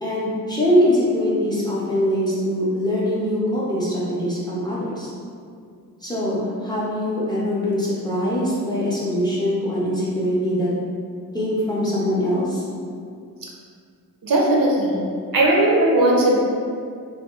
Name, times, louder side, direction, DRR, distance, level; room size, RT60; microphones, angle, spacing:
voice 1, 0.0-5.1 6.0-10.7 11.3-12.6, equal, 10° left, -8 dB, 0.5 m, -22 dB
voice 2, 14.2-15.1 15.3-16.4, right 1 dB, 60° right, -3 dB, 0.6 m, -17 dB
2.7 x 2.2 x 2.3 m, 2.3 s
wide cardioid pair, 105°, 38 cm